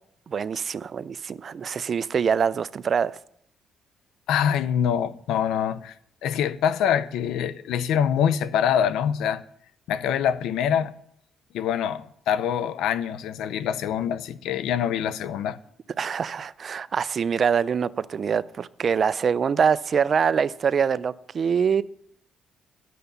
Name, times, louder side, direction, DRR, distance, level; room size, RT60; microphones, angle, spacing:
voice 1, 0.3-3.2 16.0-21.8, right 6 dB, 50° right, 0.4 m, -24 dB
voice 2, 4.3-5.9 6.2-9.4 9.9-10.9 11.5-15.6, left 9 dB, 85° left, 0.5 m, -25 dB
9.3 x 6.9 x 6.6 m
cardioid pair, 90°, 0 cm